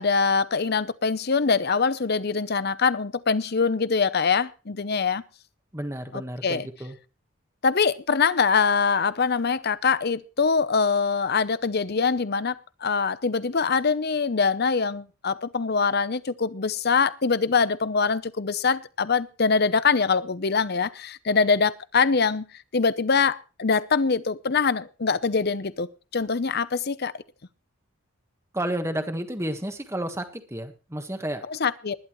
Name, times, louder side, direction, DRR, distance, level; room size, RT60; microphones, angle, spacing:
voice 1, 0.0-5.2 6.1-6.7 7.6-22.5 22.7-27.1 31.5-32.0, left 5 dB, 50° left, 0.7 m, -23 dB
voice 2, 5.7-7.0 28.5-31.4, right 1 dB, 15° right, 1.5 m, -31 dB
20.0 x 11.0 x 3.1 m
head